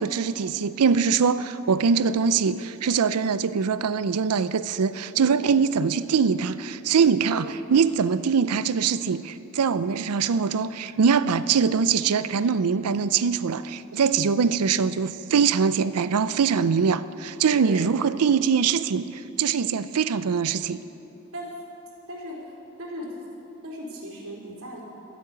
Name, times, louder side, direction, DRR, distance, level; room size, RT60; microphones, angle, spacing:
voice 1, 0.0-20.8, right 6 dB, 85° right, 15 dB, 0.5 m, -23 dB
voice 2, 23.6-24.8, equal, 65° right, -4 dB, 3.6 m, -37 dB
12.5 x 8.8 x 9.4 m, 2.8 s
head